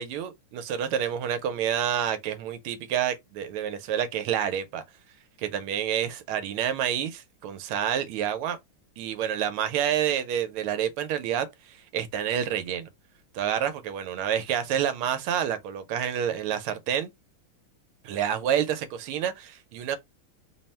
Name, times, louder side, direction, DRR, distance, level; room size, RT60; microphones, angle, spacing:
voice 1, 0.0-4.8 5.4-8.6 9.0-12.9 13.3-17.1 18.0-20.0, right 9 dB, 90° right, 1.6 m, -28 dB
3.8 x 2.1 x 4.1 m
omnidirectional pair, 2.3 m